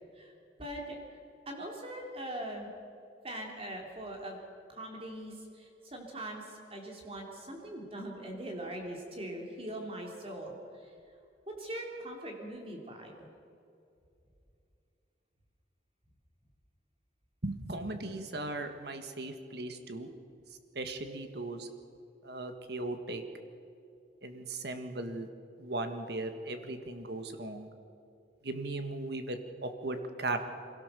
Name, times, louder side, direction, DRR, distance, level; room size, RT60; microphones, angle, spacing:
voice 1, 0.6-1.0 1.5-2.7 3.2-4.4 4.7-5.3 5.6-6.4 6.7-10.6 11.6-13.1, right 1 dB, 30° right, 1 dB, 3.2 m, -41 dB
voice 2, 17.4-20.1 20.7-21.7 22.2-23.2 24.2-25.3 25.6-27.7 28.4-30.5, right 2 dB, 60° right, 7 dB, 1.7 m, -37 dB
23.5 x 17.5 x 6.9 m, 2.6 s
head